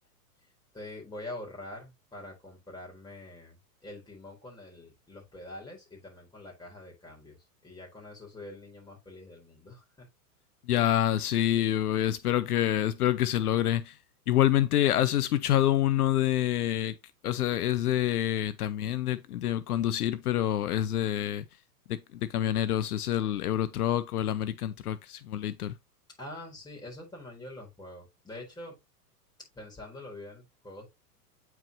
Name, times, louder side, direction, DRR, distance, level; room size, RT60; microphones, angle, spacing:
voice 1, 0.7-3.6 3.8-7.4 7.6-10.1 26.2-28.8 29.6-30.9, left 1 dB, 10° left, 4.2 m, -45 dB
voice 2, 10.7-14.0 14.3-16.9 17.2-21.4 21.9-25.7, left 12 dB, 70° left, 0.7 m, -27 dB
8.9 x 4.7 x 3.0 m
hypercardioid pair, 120°, 46 cm